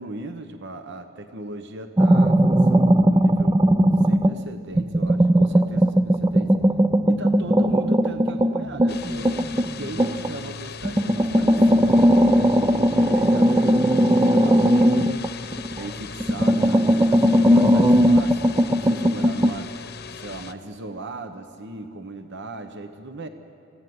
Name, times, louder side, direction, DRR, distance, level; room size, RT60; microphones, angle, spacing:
voice 1, 0.0-3.6 4.0-6.5 7.1-9.4 9.8-12.1 12.6-15.0 15.7-19.7 20.1-23.3, right 2 dB, 55° right, 8 dB, 1.0 m, -37 dB
sound 1, 2.0-4.4 4.8-10.4 10.8-15.9 16.2-19.6, equal, 15° right, 0.4 m, -18 dB
sound 2, 8.9-20.5, left 5 dB, 50° left, 0.9 m, -38 dB
26.0 x 16.0 x 9.4 m, 2.8 s
head